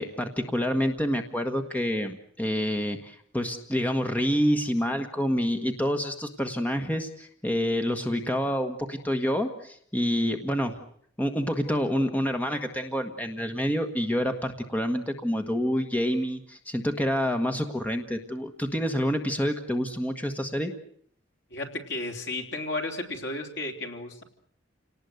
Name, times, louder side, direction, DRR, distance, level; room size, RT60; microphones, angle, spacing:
voice 1, 0.0-10.8 11.2-20.7, equal, 10° left, 6 dB, 1.5 m, -27 dB
voice 2, 21.5-24.2, left 2 dB, 65° left, 4 dB, 3.6 m, -33 dB
28.5 x 19.0 x 8.0 m, 0.64 s
head